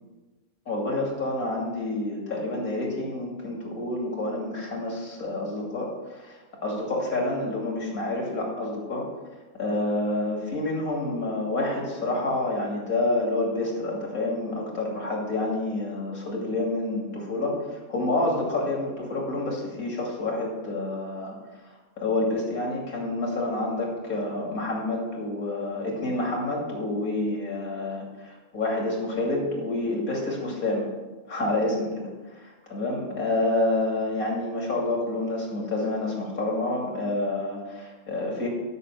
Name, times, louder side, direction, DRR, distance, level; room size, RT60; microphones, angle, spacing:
voice 1, 0.7-9.1 9.6-21.4 22.0-30.9 31.3-32.1 32.4-38.5, left 2 dB, 65° left, -2 dB, 3.1 m, -28 dB
12.0 x 6.3 x 6.2 m, 1.2 s
omnidirectional pair, 1.6 m